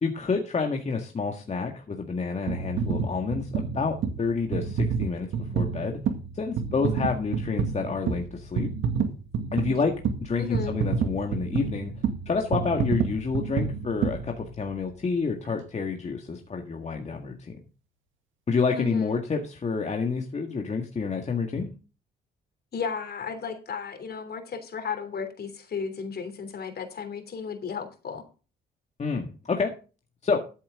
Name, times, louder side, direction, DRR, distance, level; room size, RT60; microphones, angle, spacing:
voice 1, 0.0-6.0 6.3-8.7 9.5-12.0 12.3-17.5 18.5-21.7 29.0-29.7 30.2-30.4, left 4 dB, 35° left, 2 dB, 1.8 m, -29 dB
sound 1, 2.5-14.9 15.4-15.6, right 6 dB, 80° right, 2.0 m, -29 dB
voice 2, 10.4-10.7 18.8-19.2 22.7-28.2, left 6 dB, 55° left, 7 dB, 3.2 m, -34 dB
13.5 x 8.6 x 3.6 m, 0.34 s
cardioid pair, 90°, 20 cm